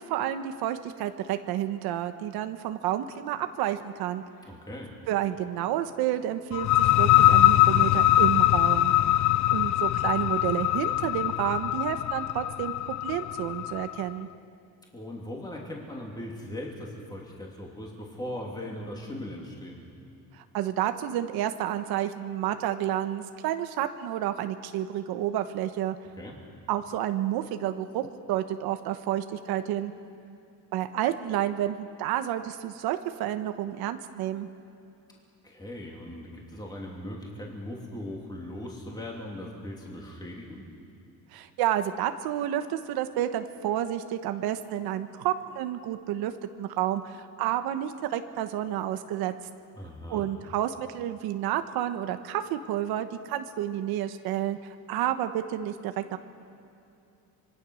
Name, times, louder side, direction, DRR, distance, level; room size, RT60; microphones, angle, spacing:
voice 1, 0.0-4.2 5.1-8.9 9.5-12.7 13.0-14.3 20.3-26.0 26.7-29.9 30.7-34.5 41.3-46.3 46.6-49.3 50.1-56.2, right 12 dB, 90° right, 8 dB, 1.1 m, -30 dB
voice 2, 4.5-4.9 14.9-19.8 26.2-26.3 35.4-40.7 49.7-50.3, left 1 dB, 10° left, -2 dB, 3.0 m, -39 dB
sound 1, 6.5-14.0, left 15 dB, 50° left, 0.5 m, -22 dB
26.0 x 23.0 x 6.4 m, 2.7 s
cardioid pair, 165°, 36 cm